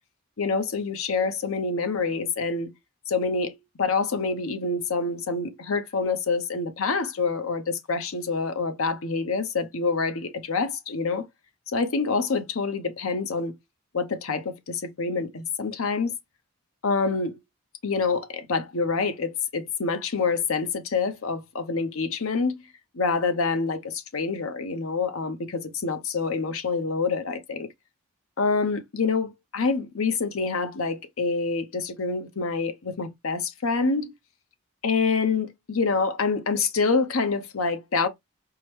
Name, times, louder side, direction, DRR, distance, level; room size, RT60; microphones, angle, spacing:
voice 1, 0.4-2.7 3.1-11.3 11.7-13.5 13.9-16.1 16.8-17.4 17.8-22.6 22.9-27.7 28.4-34.1 34.8-38.1, left 4 dB, 75° left, 0.7 m, -26 dB
4.7 x 2.1 x 3.2 m
head